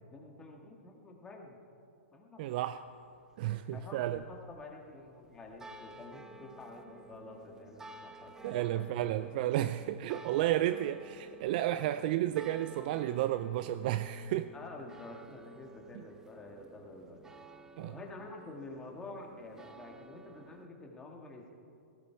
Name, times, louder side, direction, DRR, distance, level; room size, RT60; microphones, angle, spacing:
voice 1, 0.1-1.6 2.1-2.6 3.5-8.8 14.5-17.2 17.8-21.5, left 2 dB, 10° left, 2.0 m, -49 dB
sound 1, 2.4-20.7, right 3 dB, 10° right, 0.7 m, -54 dB
voice 2, 2.4-2.8 3.4-4.2 8.4-14.5 15.9-16.0 17.8-17.9, right 13 dB, 45° right, 0.4 m, -32 dB
18.0 x 15.5 x 4.7 m
hypercardioid pair, 145°, 7 cm